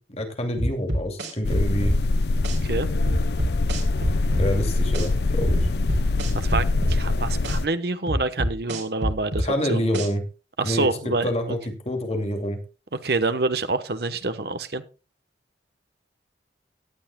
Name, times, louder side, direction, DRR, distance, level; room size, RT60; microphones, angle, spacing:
voice 1, 0.0-1.9 4.4-5.7 9.4-10.2 10.6-12.6, equal, 35° left, 4 dB, 2.4 m, -27 dB
sound 1, 0.6-2.0 2.4-2.6 3.1-4.5 4.9-5.1 5.4-7.0 7.4-7.6 8.1-9.5 9.9-10.1, equal, 85° right, 3.6 m, -26 dB
sound 2, 1.4-7.7, left 2 dB, 70° left, 0.6 m, -23 dB
voice 2, 2.5-2.9 6.3-9.8 10.6-11.6 13.0-14.8, right 3 dB, 60° right, 11 dB, 1.0 m, -27 dB
18.0 x 10.5 x 2.2 m, 0.31 s
head